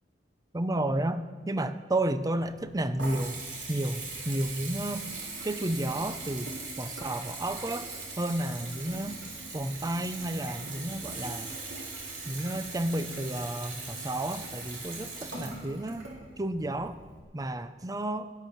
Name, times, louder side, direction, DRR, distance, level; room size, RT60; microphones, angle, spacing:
voice 1, 0.5-3.3 3.7-5.1 5.4-7.9 8.2-9.2 9.5-11.5 12.3-16.1 16.4-17.0 17.3-18.3, right 1 dB, 20° right, 11 dB, 0.6 m, -32 dB
Water tap faucet / Bathtub (filling or washing) / Trickle dribble, 2.3-17.2, right 3 dB, 85° right, 3.9 m, -40 dB
17.5 x 10.0 x 6.0 m, 1.4 s
head